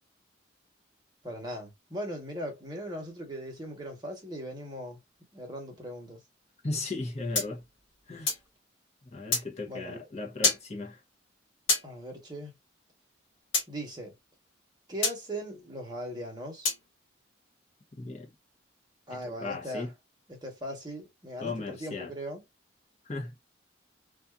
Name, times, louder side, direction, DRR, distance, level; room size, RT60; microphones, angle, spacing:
voice 1, 1.2-5.0 5.3-6.2 9.7-10.1 11.8-12.5 13.7-14.1 14.9-16.7 19.1-19.9 20.3-22.4, equal, 20° right, 1.1 m, -39 dB
voice 2, 6.6-7.6 8.1-8.3 9.1-11.0 18.0-18.3 19.1-19.9 21.4-22.1 23.0-23.3, left 3 dB, 35° left, 0.8 m, -36 dB
sound 1, 7.3-8.5 9.3-9.5 10.4-10.6 11.7-11.9 13.5-13.7 15.0-15.2 16.6-16.8, left 3 dB, 85° left, 1.4 m, -27 dB
2.6 x 2.4 x 2.3 m
head